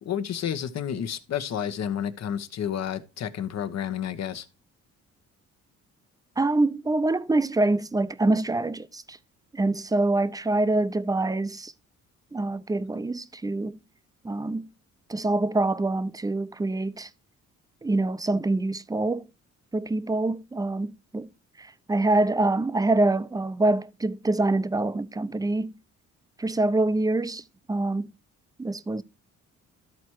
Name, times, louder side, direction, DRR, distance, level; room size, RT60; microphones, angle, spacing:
voice 1, 0.0-4.5, left 9 dB, 60° left, 1.1 m, -30 dB
voice 2, 6.4-9.2 9.5-11.7 12.3-13.8 14.2-14.7 15.1-17.1 17.8-19.3 19.7-21.3 21.6-25.8 26.4-27.4 27.7-28.1 28.6-29.0, right 2 dB, 10° right, 0.6 m, -25 dB
13.0 x 4.3 x 4.6 m
cardioid pair, 90°, 30 cm